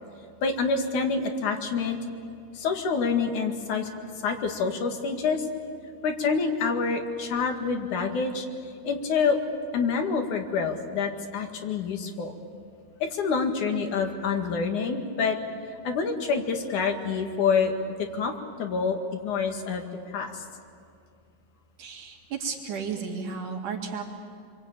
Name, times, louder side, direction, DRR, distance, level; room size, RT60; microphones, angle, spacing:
voice 1, 0.4-2.0 2.6-3.9 4.2-5.5 6.0-8.5 8.8-9.4 9.7-12.3 13.0-15.4 15.9-17.7 18.1-18.3 18.6-19.0 19.2-19.8 20.1-20.5, left 5 dB, 80° left, 3 dB, 3.5 m, -27 dB
voice 2, 21.8-24.0, right 6 dB, 85° right, 0 dB, 3.7 m, -33 dB
27.5 x 23.0 x 8.8 m, 2.3 s
omnidirectional pair, 3.4 m